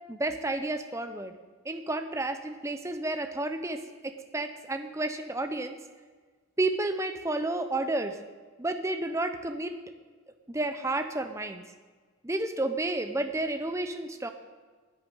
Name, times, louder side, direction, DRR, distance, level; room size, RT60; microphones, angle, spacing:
voice 1, 0.1-1.3 1.6-5.8 6.6-8.2 8.6-9.8 10.5-11.6 12.2-14.3, right 2 dB, 15° right, 8 dB, 0.7 m, -31 dB
10.5 x 9.6 x 8.9 m, 1.5 s
head